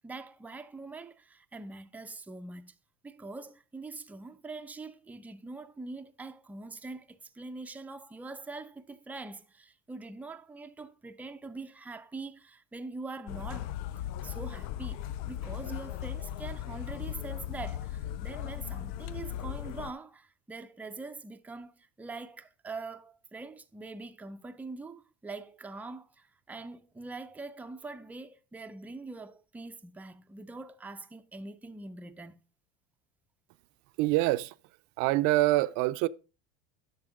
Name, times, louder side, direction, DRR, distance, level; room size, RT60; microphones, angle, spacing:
voice 1, 0.0-2.7 3.0-13.7 14.2-15.0 15.3-32.4, right 3 dB, 5° right, 0.4 m, -43 dB
sound 1, 13.3-19.9, left 11 dB, 60° left, 0.5 m, -37 dB
voice 2, 34.0-34.5 35.0-36.1, right 18 dB, 65° right, 0.5 m, -25 dB
8.9 x 6.1 x 3.6 m
supercardioid pair, 110°, 31 cm